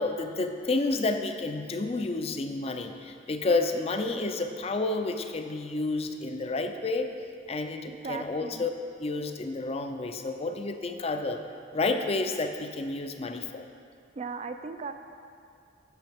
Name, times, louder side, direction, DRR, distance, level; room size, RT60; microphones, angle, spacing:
voice 1, 0.0-7.1 7.5-8.7 9.0-11.4 11.7-13.6, left 3 dB, 35° left, 7 dB, 0.4 m, -30 dB
voice 2, 7.9-8.7 14.2-14.9, right 4 dB, 35° right, 8 dB, 0.4 m, -37 dB
10.5 x 6.9 x 3.5 m, 2.5 s
head